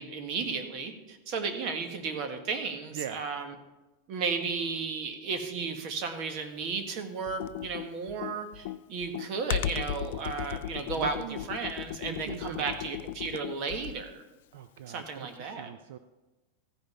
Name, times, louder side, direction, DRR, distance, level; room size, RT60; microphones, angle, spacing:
voice 1, 0.0-3.5 4.1-14.2 14.9-15.7, right 5 dB, 40° right, 6 dB, 1.4 m, -34 dB
Computer keyboard, 7.3-14.1, left 13 dB, 65° left, 0.4 m, -36 dB
voice 2, 11.0-11.4 12.1-12.8 14.5-16.0, right 10 dB, 70° right, 10 dB, 0.5 m, -41 dB
15.0 x 5.3 x 5.5 m, 1.1 s
supercardioid pair, 160°, 0 cm